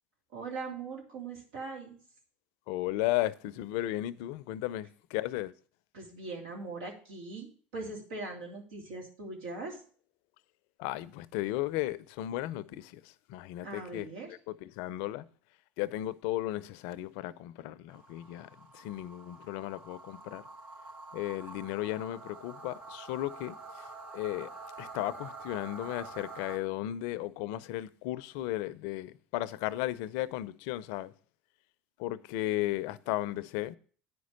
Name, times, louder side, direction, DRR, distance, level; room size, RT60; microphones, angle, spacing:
voice 1, 0.3-2.0 5.9-9.8 13.6-14.3, right 3 dB, 80° right, 3.0 m, -41 dB
voice 2, 2.7-5.5 10.8-13.0 13.3-14.1 14.5-15.3 15.8-20.4 21.1-23.9 24.1-24.5 24.8-31.1 32.0-33.8, left 15 dB, 70° left, 0.5 m, -35 dB
sound 1, 17.9-26.6, right 3 dB, 45° right, 3.2 m, -47 dB
9.5 x 5.2 x 6.3 m
hypercardioid pair, 85°, 5 cm